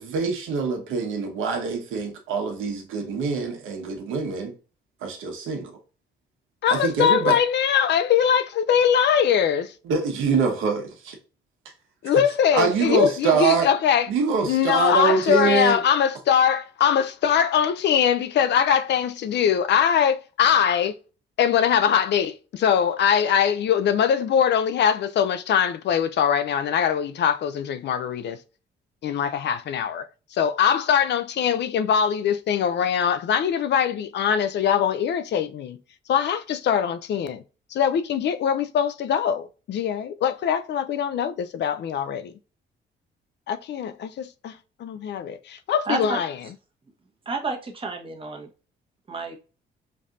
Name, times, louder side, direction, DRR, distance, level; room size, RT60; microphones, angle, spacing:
voice 1, 0.0-4.5 5.0-5.7 6.7-7.4 9.9-11.1 12.5-13.7 14.1-15.8, right 5 dB, 85° right, 1.2 m, -24 dB
voice 2, 6.6-9.7 12.0-14.1 14.5-21.0 21.4-28.4 29.0-35.8 36.1-37.4 37.7-42.3 43.5-46.3, left 8 dB, 60° left, 0.5 m, -22 dB
voice 3, 45.9-46.2 47.3-48.5 49.1-49.4, right 3 dB, 25° right, 1.1 m, -30 dB
5.3 x 2.7 x 2.5 m
cardioid pair, 90°, 20 cm